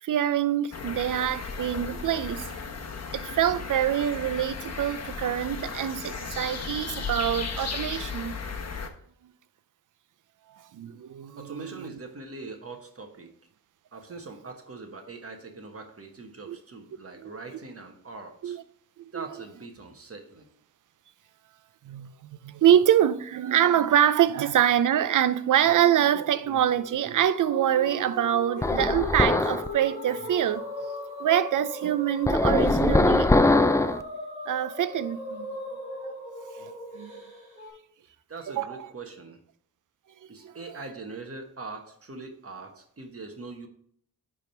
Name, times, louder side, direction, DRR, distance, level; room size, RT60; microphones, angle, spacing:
voice 1, 0.0-2.5 3.1-8.4 10.7-11.9 16.5-16.6 17.2-17.3 18.4-18.6 19.1-19.2 21.8-30.6 31.2-33.3 34.5-35.6 36.6-37.2 38.5-38.9 40.4-40.5, right 10 dB, 60° right, 0.5 m, -25 dB
sound 1, 0.7-8.9, left 5 dB, 45° left, 1.0 m, -35 dB
voice 2, 11.4-13.3 13.9-18.6 19.1-20.4 38.3-39.4 40.3-43.7, right 3 dB, 40° right, 1.3 m, -42 dB
sound 2, 27.2-37.7, left 1 dB, 20° right, 2.9 m, -37 dB
sound 3, 28.6-29.7 32.3-34.0, left 2 dB, 10° left, 0.3 m, -21 dB
9.7 x 3.7 x 4.4 m
cardioid pair, 70°, 36 cm